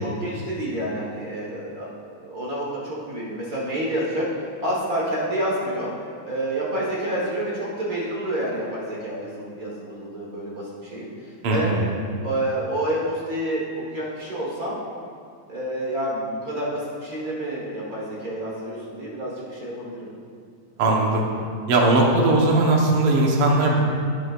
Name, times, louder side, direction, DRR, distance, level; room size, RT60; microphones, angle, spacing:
voice 1, 0.0-1.9 2.2-4.3 4.6-5.9 6.2-11.9 12.2-13.6 13.9-14.8 15.5-20.1, right 1 dB, 40° right, -5 dB, 1.4 m, -28 dB
voice 2, 11.4-11.8 20.8-21.2 21.7-23.8, right 2 dB, 60° right, -1 dB, 1.9 m, -19 dB
12.5 x 9.1 x 2.5 m, 2.3 s
omnidirectional pair, 3.4 m